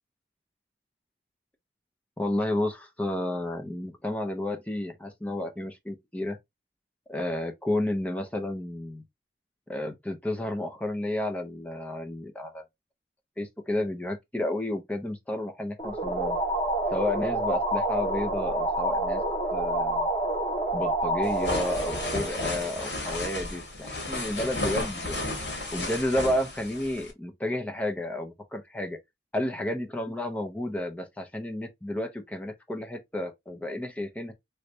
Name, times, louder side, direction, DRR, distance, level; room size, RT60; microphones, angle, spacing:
voice 1, 2.2-6.4 7.1-9.0 9.7-12.6 13.4-16.4 16.9-19.2 19.5-20.1 20.7-25.2 25.7-29.0 29.3-34.3, left 1 dB, 10° left, 0.6 m, -31 dB
sound 1, 15.8-23.2, right 1 dB, 25° left, 1.4 m, -28 dB
sound 2, 21.2-27.1, left 2 dB, 75° left, 1.6 m, -33 dB
3.2 x 3.1 x 2.6 m
head